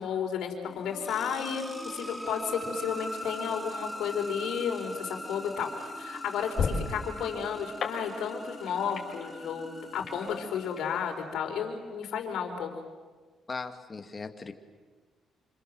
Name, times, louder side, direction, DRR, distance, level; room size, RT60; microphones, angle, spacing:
voice 1, 0.0-12.7, left 7 dB, 80° left, 3 dB, 4.5 m, -33 dB
sound 1, 0.7-11.4, equal, 5° right, 3.7 m, -41 dB
sound 2, 4.6-10.8, left 4 dB, 55° left, 6.2 m, -38 dB
voice 2, 13.5-14.5, left 4 dB, 30° left, 7 dB, 2.1 m, -38 dB
27.0 x 26.0 x 7.9 m, 1.4 s
cardioid pair, 90°, 0 cm